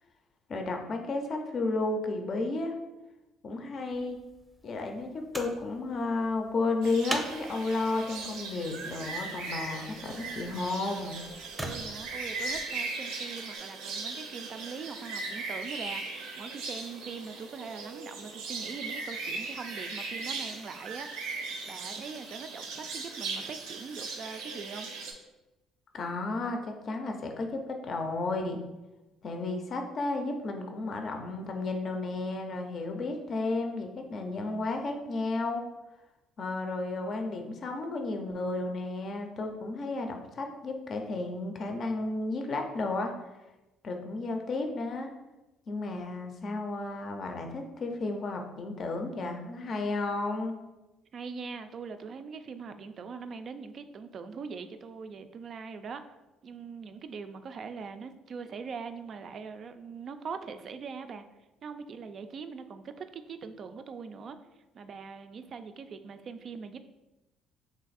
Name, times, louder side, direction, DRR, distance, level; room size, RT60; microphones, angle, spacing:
voice 1, 0.5-2.8 3.4-4.2 4.6-11.2 25.9-28.6 29.2-35.6 36.4-43.1 43.8-45.1 45.7-50.5, left 3 dB, 50° left, 4 dB, 0.5 m, -33 dB
sound 1, 3.9-12.6 13.5-13.6, right 1 dB, 5° right, 0.6 m, -44 dB
sound 2, 6.8-25.1, right 3 dB, 90° right, 0.6 m, -38 dB
voice 2, 11.6-21.1 21.7-24.9 51.1-56.0 56.4-61.2 61.6-64.4 64.7-66.8, right 5 dB, 50° right, 9 dB, 0.3 m, -42 dB
3.2 x 2.5 x 4.0 m, 1.0 s
supercardioid pair, 85°, 0 cm